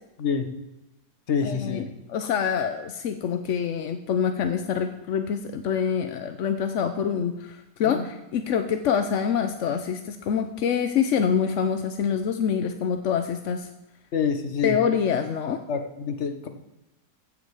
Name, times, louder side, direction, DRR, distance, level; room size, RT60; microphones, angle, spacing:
voice 1, 0.2-0.5 1.3-1.9 7.8-8.0 14.1-14.8 15.7-16.5, left 6 dB, 45° left, 7 dB, 1.2 m, -27 dB
voice 2, 1.4-1.8 2.1-13.7 14.6-15.6, left 7 dB, 60° left, 8 dB, 0.8 m, -26 dB
15.0 x 7.5 x 4.8 m, 0.96 s
omnidirectional pair, 1.9 m